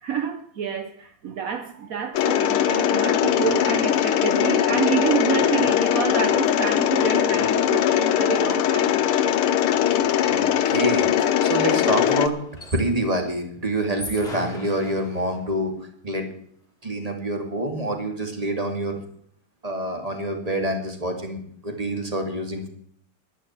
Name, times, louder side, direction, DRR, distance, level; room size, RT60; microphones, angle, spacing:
voice 1, 0.0-9.0, right 8 dB, 60° right, 0.9 m, -28 dB
Mechanisms, 2.1-12.3, left 10 dB, 80° left, 1.7 m, -21 dB
sound 1, 7.2-7.3 7.5-13.1 13.8-15.6, left 2 dB, 25° left, 2.6 m, -42 dB
voice 2, 10.3-12.3 12.7-15.7 16.0-16.2 16.8-19.0 19.6-22.7, right 1 dB, 15° right, 2.5 m, -26 dB
11.0 x 11.0 x 7.3 m
omnidirectional pair, 2.4 m